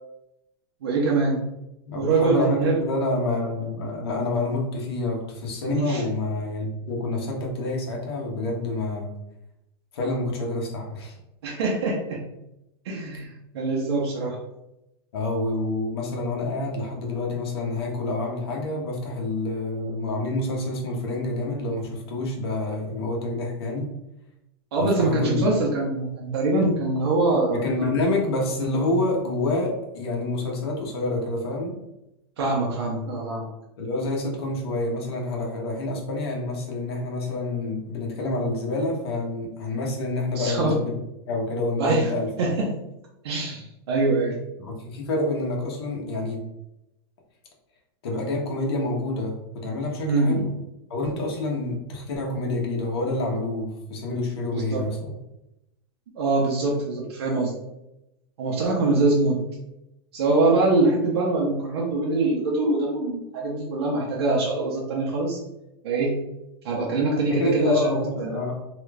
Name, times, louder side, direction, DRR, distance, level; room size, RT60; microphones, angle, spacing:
voice 1, 0.8-1.4 2.0-2.8 5.7-6.0 11.4-12.2 12.8-14.4 24.7-27.9 32.4-33.5 40.4-40.8 41.8-42.1 42.4-42.7 43.2-44.4 50.0-50.4 54.5-54.8 56.2-57.5 58.4-59.4 60.1-65.4 65.8-66.2 66.6-68.4, right 2 dB, 80° right, -3 dB, 0.8 m, -23 dB
voice 2, 1.8-9.1 9.9-11.2 15.1-23.9 24.8-25.4 27.5-31.8 33.8-40.9 41.3-42.3 44.6-46.4 48.0-50.5 50.9-55.1 67.3-68.5, left 2 dB, 75° left, -1 dB, 1.0 m, -28 dB
3.0 x 2.4 x 3.2 m, 0.90 s
supercardioid pair, 180°, 13 cm